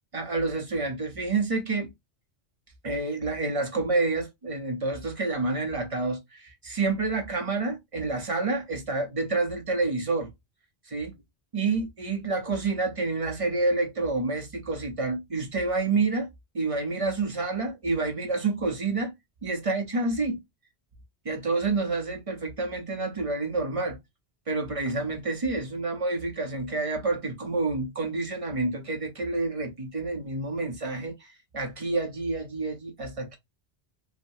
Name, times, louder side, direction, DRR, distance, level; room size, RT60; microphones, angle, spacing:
voice 1, 0.1-1.9 2.8-10.3 10.9-11.1 11.5-16.3 16.5-19.1 19.4-20.4 21.2-24.0 24.5-33.4, right 3 dB, 35° right, 0.8 m, -28 dB
3.2 x 2.1 x 2.5 m
omnidirectional pair, 1.1 m